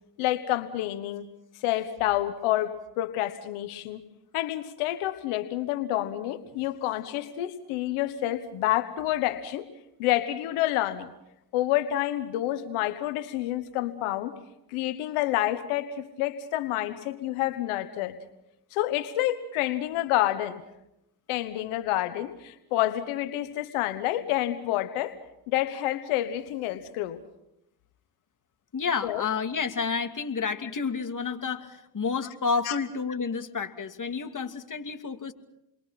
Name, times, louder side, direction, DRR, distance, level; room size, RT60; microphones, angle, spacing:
voice 1, 0.2-1.3 1.5-4.0 4.3-9.7 10.0-11.1 11.5-14.4 14.7-18.2 18.7-20.6 21.3-25.1 25.5-27.2 29.0-29.2 32.6-32.8, left 14 dB, 85° left, 11 dB, 1.4 m, -28 dB
voice 2, 28.7-35.3, left 5 dB, 40° left, 6 dB, 2.8 m, -30 dB
29.0 x 22.5 x 5.9 m, 0.84 s
supercardioid pair, 60°, 48 cm